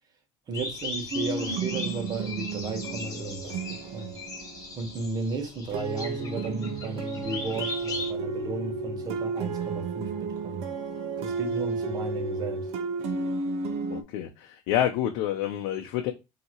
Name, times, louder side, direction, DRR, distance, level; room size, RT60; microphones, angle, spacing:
sound 1, 0.5-8.1, left 4 dB, 30° left, 1.4 m, -38 dB
voice 1, 0.5-4.1 4.7-10.7 11.2-12.7, right 3 dB, 35° right, 1.2 m, -34 dB
sound 2, 1.1-5.1 5.7-14.0, right 4 dB, 65° right, 0.7 m, -32 dB
voice 2, 13.9-16.1, left 11 dB, 85° left, 0.6 m, -28 dB
5.4 x 2.8 x 2.9 m
cardioid pair, 145°, 12 cm